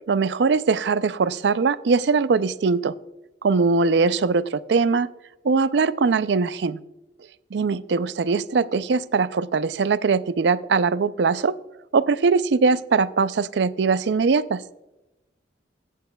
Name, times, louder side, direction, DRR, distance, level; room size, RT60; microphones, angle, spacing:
voice 1, 0.1-2.9 3.4-5.1 5.4-6.8 7.5-11.6 11.9-14.6, right 4 dB, 70° right, 16 dB, 0.4 m, -21 dB
14.5 x 9.3 x 2.3 m, 0.96 s
head